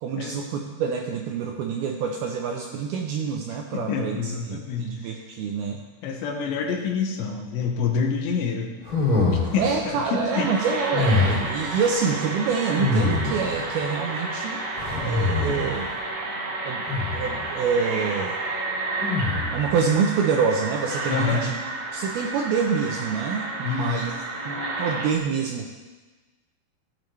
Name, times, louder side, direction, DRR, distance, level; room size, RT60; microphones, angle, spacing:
voice 1, 0.0-5.8 9.4-14.6 15.0-15.9 16.6-16.8 17.1-18.4 19.5-21.6 21.9-24.1 24.5-25.7, right 6 dB, 80° right, 2 dB, 2.2 m, -26 dB
voice 2, 3.7-5.1 6.0-8.7 9.5-10.5 21.1-21.5 23.6-24.0, left 5 dB, 80° left, 2 dB, 3.3 m, -27 dB
sound 1, 8.8-9.8 10.9-11.6 12.8-13.6 14.8-15.8 16.9-17.4 19.0-19.7, left 3 dB, 10° left, 3.2 m, -24 dB
sound 2, 10.3-25.2, right 2 dB, 60° right, 1.8 m, -31 dB
15.5 x 9.0 x 3.2 m, 1.3 s
omnidirectional pair, 5.1 m